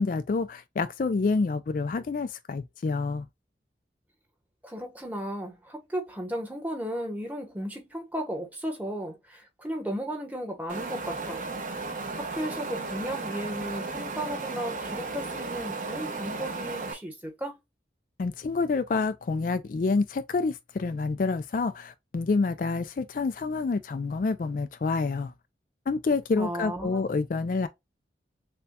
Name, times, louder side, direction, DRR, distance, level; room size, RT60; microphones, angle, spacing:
voice 1, 0.0-3.2 18.2-25.3 25.9-27.7, left 4 dB, 45° left, 0.3 m, -28 dB
voice 2, 4.6-11.4 12.2-17.6 26.4-27.0, equal, 10° right, 1.0 m, -35 dB
Wind, 10.7-16.9, right 3 dB, 45° right, 0.9 m, -35 dB
6.7 x 2.3 x 2.2 m
head